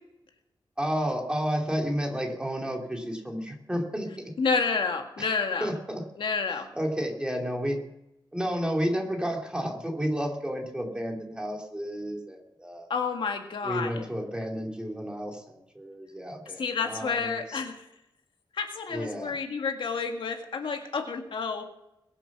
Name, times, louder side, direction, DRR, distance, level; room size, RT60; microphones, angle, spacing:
voice 1, 0.8-4.3 5.2-5.3 5.6-6.0 6.7-7.8 8.3-12.9 13.6-17.6 18.9-19.3, equal, 10° right, 1 dB, 2.7 m, -31 dB
voice 2, 4.4-5.7 6.2-6.7 12.9-14.0 16.6-17.8 18.5-21.7, left 5 dB, 70° left, 4 dB, 1.9 m, -29 dB
22.0 x 7.8 x 6.1 m, 0.88 s
wide cardioid pair, 125°, 9 cm